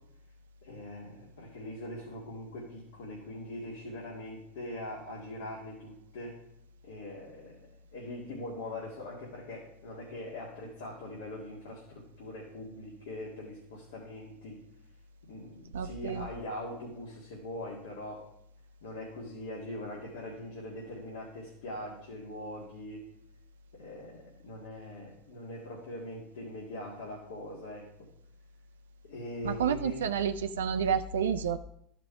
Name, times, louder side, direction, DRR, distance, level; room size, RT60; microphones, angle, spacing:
voice 1, 0.6-6.4 6.8-7.6 7.9-14.6 15.3-18.2 18.8-23.0 23.7-27.9 29.0-30.0, left 1 dB, 80° left, -4 dB, 1.9 m, -42 dB
voice 2, 15.7-16.3 29.4-31.6, right 7 dB, 85° right, 9 dB, 0.4 m, -30 dB
12.0 x 4.9 x 4.7 m, 0.73 s
hypercardioid pair, 90°, 0 cm